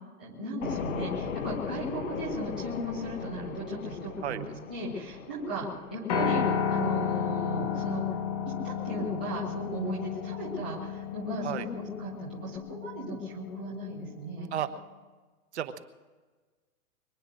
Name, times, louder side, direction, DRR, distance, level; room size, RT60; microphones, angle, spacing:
voice 1, 0.2-4.4 4.7-8.0 8.6-14.5, right 1 dB, 5° right, -9 dB, 0.5 m, -36 dB
sound 1, 0.6-12.6, left 7 dB, 60° left, 1.2 m, -41 dB
voice 2, 4.2-4.4 11.4-11.7 14.5-14.7 15.5-15.8, right 10 dB, 50° right, 10 dB, 1.1 m, -32 dB
Piano, 6.1-14.4, left 7 dB, 25° left, 1.3 m, -32 dB
23.5 x 9.5 x 6.4 m, 1.3 s
hypercardioid pair, 175°, 44 cm